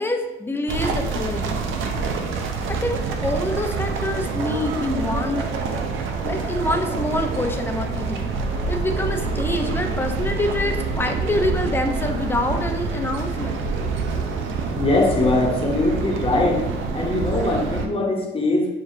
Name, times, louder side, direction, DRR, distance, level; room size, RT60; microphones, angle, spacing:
voice 1, 0.0-1.6 2.7-5.5 6.2-8.3 8.7-13.7, left 1 dB, 10° left, 4 dB, 0.5 m, -26 dB
sound 1, 0.7-17.9, right 4 dB, 85° right, 0.5 m, -26 dB
voice 2, 14.7-16.6 16.9-18.7, left 2 dB, 30° left, 0 dB, 1.0 m, -21 dB
6.5 x 2.4 x 2.7 m, 0.98 s
cardioid pair, 90°, 20 cm